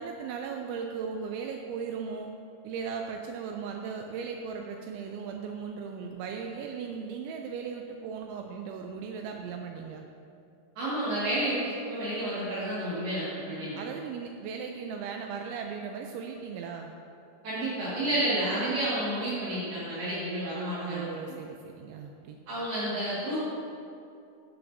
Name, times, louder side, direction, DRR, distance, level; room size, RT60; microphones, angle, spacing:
voice 1, 0.0-2.3 2.6-10.1 13.5-16.9 20.8-22.4, right 6 dB, 85° right, 3 dB, 2.6 m, -37 dB
voice 2, 10.8-13.8 17.4-21.0 22.5-23.4, right 1 dB, 60° right, -11 dB, 3.4 m, -30 dB
12.0 x 10.5 x 2.6 m, 2.6 s
omnidirectional pair, 5.9 m